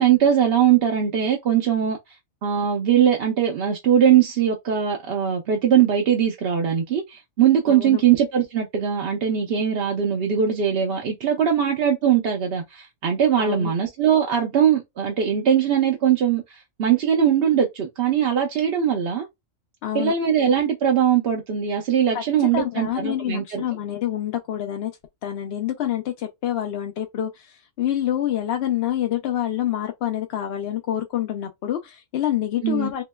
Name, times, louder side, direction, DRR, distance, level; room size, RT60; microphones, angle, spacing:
voice 1, 0.0-2.0 2.4-19.3 19.9-23.6 32.6-32.9, right 9 dB, 60° right, 0.7 m, -21 dB
voice 2, 7.7-8.0 13.4-13.7 19.8-20.1 22.1-24.9 25.2-33.0, left 11 dB, 65° left, 0.7 m, -27 dB
3.0 x 2.8 x 2.2 m
omnidirectional pair, 1.4 m